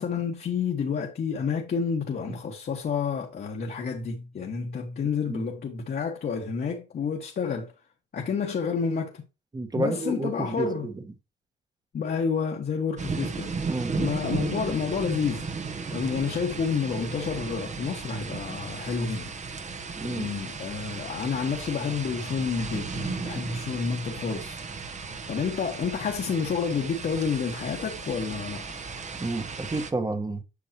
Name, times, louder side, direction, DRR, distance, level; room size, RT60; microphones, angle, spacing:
voice 1, 0.0-7.7 8.1-9.2 9.7-10.9 11.9-13.6 14.0-19.3 20.0-24.6 25.3-28.6, left 6 dB, 50° left, 1.5 m, -29 dB
voice 2, 9.5-11.0 13.7-13.9 20.0-20.3 29.2-30.4, right 2 dB, 20° right, 1.3 m, -30 dB
sound 1, 13.0-29.9, right 4 dB, 35° right, 1.0 m, -35 dB
8.5 x 5.8 x 2.9 m
cardioid pair, 90°, 20 cm